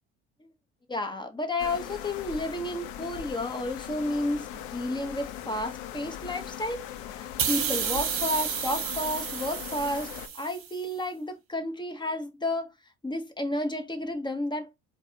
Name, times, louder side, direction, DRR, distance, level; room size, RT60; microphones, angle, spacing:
voice 1, 0.9-12.7 13.0-14.7, left 1 dB, 15° left, 0.9 m, -32 dB
sound 1, 1.6-10.3, left 10 dB, 85° left, 0.6 m, -40 dB
sound 2, 7.4-10.8, right 8 dB, 50° right, 1.0 m, -31 dB
4.6 x 2.3 x 2.7 m
supercardioid pair, 90°, 30 cm